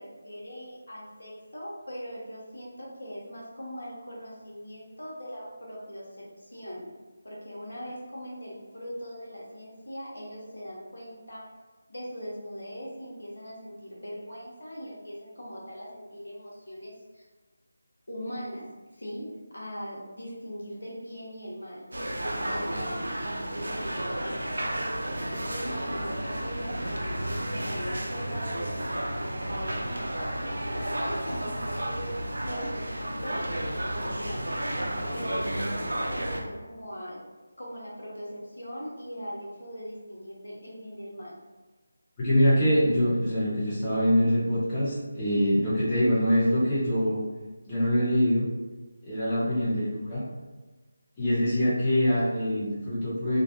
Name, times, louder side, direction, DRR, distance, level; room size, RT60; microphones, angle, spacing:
voice 1, 0.0-6.9 7.2-11.5 11.9-17.3 18.1-18.7 18.9-19.3 19.5-21.8 22.3-23.0 23.5-24.1 25.0-32.1 32.4-33.4 34.0-34.5 35.1-37.2 37.6-41.3 49.4-49.8, equal, 80° left, -5 dB, 0.9 m, -40 dB
sound 1, 21.9-36.4, right 1 dB, 80° right, 0.4 m, -32 dB
voice 2, 42.2-47.2 47.7-48.5 49.0-50.2 51.2-53.4, equal, 20° left, -11 dB, 0.8 m, -24 dB
2.5 x 2.1 x 2.8 m, 1.2 s
figure-of-eight pair, 165°, 0 cm